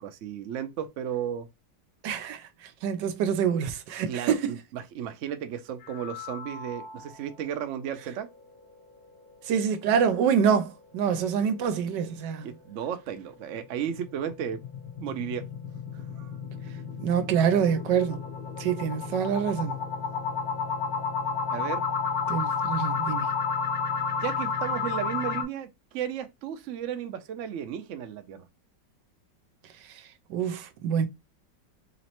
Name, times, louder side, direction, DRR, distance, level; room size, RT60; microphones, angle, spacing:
voice 1, 0.0-1.5 4.1-8.3 12.4-14.6 15.0-15.5 15.9-16.3 21.5-21.8 24.2-28.5, right 9 dB, 65° right, 0.7 m, -34 dB
voice 2, 2.0-4.5 9.5-12.5 17.0-18.2 18.6-19.8 22.3-23.3 30.3-31.1, right 7 dB, 85° right, 1.3 m, -26 dB
sound 1, 5.8-7.3 7.7-7.8 8.2-8.3 8.7-8.8 13.6-25.4, left 5 dB, 60° left, 1.2 m, -32 dB
4.1 x 3.1 x 2.9 m
omnidirectional pair, 1.9 m